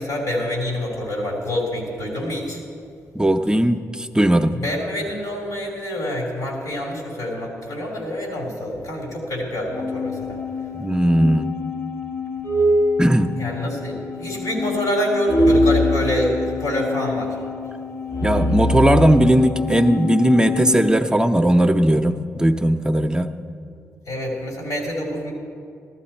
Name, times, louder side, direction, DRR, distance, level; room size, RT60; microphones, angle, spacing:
voice 1, 0.0-2.6 4.5-10.4 13.4-17.4 24.1-25.3, left 1 dB, 85° left, 0 dB, 3.3 m, -26 dB
voice 2, 3.1-4.6 10.8-11.6 13.0-13.3 18.2-23.3, right 1 dB, 15° right, 7 dB, 0.6 m, -18 dB
sound 1, 9.7-20.9, left 1 dB, 60° left, 1.5 m, -24 dB
14.5 x 12.5 x 4.3 m, 2.5 s
cardioid pair, 65°, 6 cm